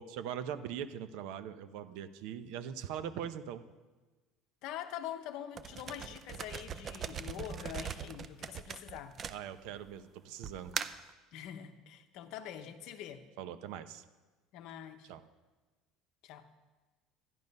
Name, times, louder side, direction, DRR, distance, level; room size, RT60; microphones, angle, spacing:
voice 1, 0.0-3.6 9.3-10.8 13.4-14.0 15.1-15.2, right 9 dB, 60° right, 11 dB, 0.7 m, -41 dB
voice 2, 4.6-9.2 11.3-13.3 14.5-15.1 16.2-16.5, left 10 dB, 50° left, 8 dB, 0.9 m, -44 dB
sound 1, 5.6-9.9 10.4-11.1, right 7 dB, 25° right, 0.4 m, -40 dB
12.5 x 11.0 x 5.4 m, 1.3 s
cardioid pair, 180°, 0 cm